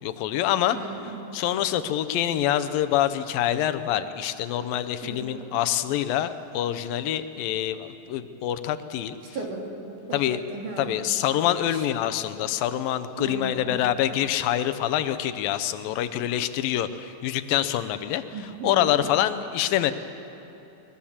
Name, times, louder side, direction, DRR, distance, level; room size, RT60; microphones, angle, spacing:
voice 1, 0.0-0.9 1.3-9.2 10.1-10.4 10.8-19.9, left 12 dB, 90° left, 11 dB, 2.6 m, -26 dB
voice 2, 0.7-1.2 5.0-5.6 9.3-9.8 10.1-10.9 11.7-11.8 13.2-13.8 18.3-19.0, right 3 dB, 65° right, 0 dB, 4.0 m, -36 dB
23.0 x 20.5 x 7.3 m, 3.0 s
omnidirectional pair, 4.0 m